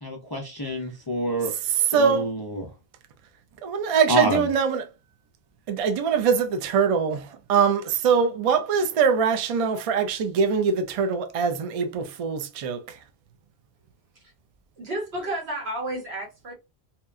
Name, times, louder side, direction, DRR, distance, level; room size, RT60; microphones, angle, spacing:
voice 1, 0.0-1.5 1.9-2.7 4.1-4.5, right 1 dB, 35° left, 0.4 m, -27 dB
voice 2, 1.4-2.3 3.6-4.8 5.7-13.0, right 6 dB, 55° right, 0.4 m, -23 dB
voice 3, 14.8-16.5, right 1 dB, 90° right, 1.4 m, -31 dB
2.8 x 2.2 x 2.4 m
omnidirectional pair, 1.0 m